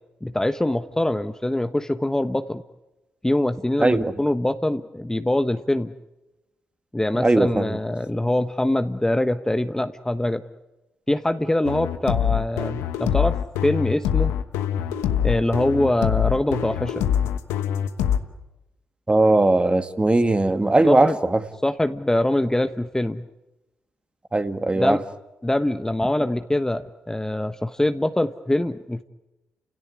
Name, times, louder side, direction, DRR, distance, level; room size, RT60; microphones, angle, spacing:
voice 1, 0.2-2.6 3.2-5.9 6.9-10.4 11.1-13.3 13.6-14.3 15.2-17.1 20.8-21.2 21.6-23.2 24.8-25.0 25.4-29.0, left 1 dB, 10° left, 9 dB, 1.2 m, -23 dB
voice 2, 3.8-4.1 7.1-7.8 19.1-21.4 24.3-25.0, right 2 dB, 25° right, 9 dB, 2.0 m, -19 dB
sound 1, 11.6-18.2, left 9 dB, 90° left, 1.2 m, -24 dB
30.0 x 17.0 x 9.8 m, 1.0 s
supercardioid pair, 50°, 5 cm